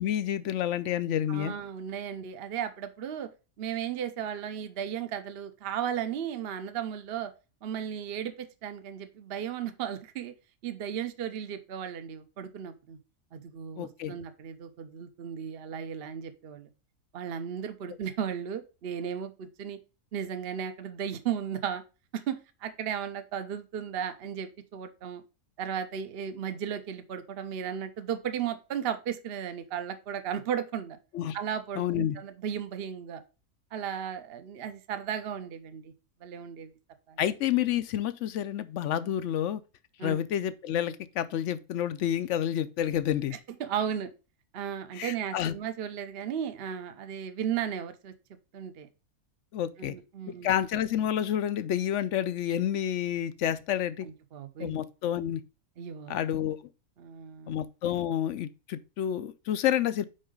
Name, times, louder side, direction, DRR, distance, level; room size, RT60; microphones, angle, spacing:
voice 1, 0.0-1.5 13.8-14.1 31.1-31.4 31.8-32.2 37.2-39.6 40.0-43.4 44.9-45.5 49.5-49.9 50.4-54.1 54.6-55.4 56.1-56.6 57.5-60.1, left 10 dB, 65° left, 0.8 m, -29 dB
voice 2, 1.3-3.3 3.6-7.3 7.6-10.3 10.6-13.0 13.3-16.7 17.1-19.8 20.1-21.8 22.1-25.2 25.6-31.0 31.3-33.2 33.7-35.9 36.2-36.7 37.1-37.2 40.0-40.2 43.6-44.1 44.5-48.1 48.5-48.9 49.8-50.5 54.0-54.8 55.8-56.2 57.0-57.5, right 8 dB, 50° right, 0.9 m, -35 dB
5.5 x 4.8 x 5.1 m
omnidirectional pair, 1.5 m